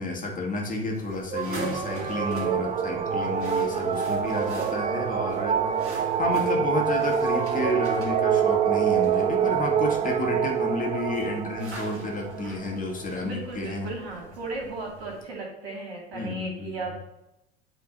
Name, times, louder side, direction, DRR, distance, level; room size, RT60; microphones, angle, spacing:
voice 1, 0.0-13.9 16.1-16.9, left 2 dB, 25° left, 0 dB, 1.8 m, -31 dB
sound 1, 0.7-15.2, right 2 dB, 45° right, 2.6 m, -44 dB
sound 2, 1.3-13.1, right 7 dB, 20° right, 0.4 m, -26 dB
voice 2, 2.6-3.0 10.2-10.4 13.2-17.0, right 3 dB, 70° right, -1 dB, 2.6 m, -36 dB
8.7 x 3.7 x 3.9 m, 0.87 s
figure-of-eight pair, 75°, 31 cm